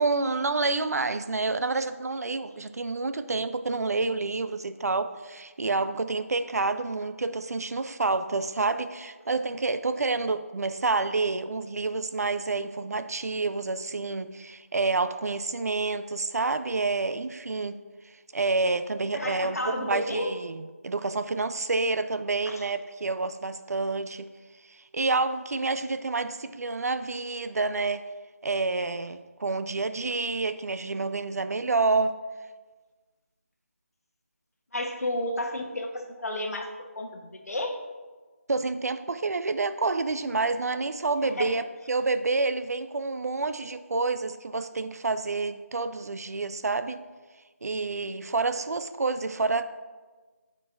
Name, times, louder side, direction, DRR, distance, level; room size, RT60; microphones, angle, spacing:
voice 1, 0.0-17.8 18.0-24.3 24.7-28.0 28.4-32.2 38.5-47.0 47.6-49.6, right 3 dB, 85° right, 11 dB, 0.4 m, -28 dB
voice 2, 19.1-20.3 22.5-22.6 34.7-37.8 41.4-41.6, left 1 dB, 75° left, 4 dB, 1.1 m, -32 dB
8.4 x 5.2 x 2.5 m, 1.3 s
figure-of-eight pair, 175°, 8 cm